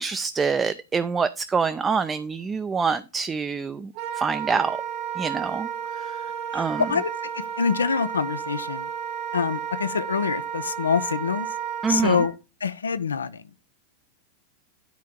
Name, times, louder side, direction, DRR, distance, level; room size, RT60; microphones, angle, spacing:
voice 1, 0.0-4.8 5.2-5.7 5.9-6.2 6.5-6.9 11.8-12.2, right 5 dB, 15° right, 0.5 m, -26 dB
Wind instrument woodwind instrument, 3.9-12.3, right 8 dB, 45° right, 1.1 m, -32 dB
voice 2, 6.5-7.1 7.6-8.9 9.3-11.5 11.9-12.3 12.6-13.4, left 6 dB, 70° left, 0.6 m, -25 dB
10.0 x 4.6 x 3.6 m
figure-of-eight pair, 90°, 0 cm